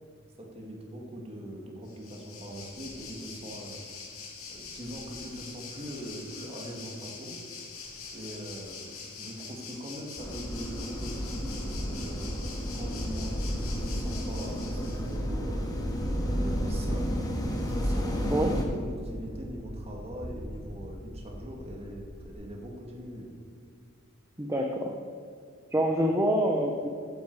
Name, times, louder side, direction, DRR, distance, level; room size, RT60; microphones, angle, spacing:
voice 1, 0.4-3.8 4.5-7.4 8.1-12.3 12.7-15.8 16.2-17.1 17.6-23.3, equal, 30° right, 0 dB, 2.2 m, -42 dB
Waves surf, 1.9-15.2, left 5 dB, 75° left, 2.3 m, -44 dB
sound 1, 10.2-18.6, equal, 20° left, 1.6 m, -32 dB
sound 2, 14.9-22.3, equal, 55° right, 2.8 m, -39 dB
voice 2, 24.4-25.0 25.7-26.9, equal, 15° right, 2 dB, 0.8 m, -26 dB
15.0 x 9.5 x 4.8 m, 2.3 s
head